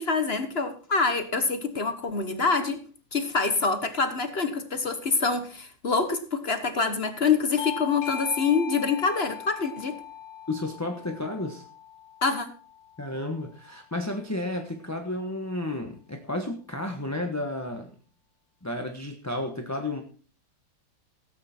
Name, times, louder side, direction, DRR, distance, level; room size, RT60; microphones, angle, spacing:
voice 1, 0.0-2.8 3.1-10.0 12.2-12.5, left 4 dB, 40° left, 9 dB, 1.2 m, -26 dB
Bell / Doorbell, 7.6-12.8, left 9 dB, 65° left, 1.7 m, -39 dB
voice 2, 10.5-11.7 13.0-17.9 18.6-20.0, left 1 dB, 10° left, 3 dB, 1.0 m, -32 dB
17.0 x 9.1 x 4.4 m, 0.40 s
omnidirectional pair, 2.0 m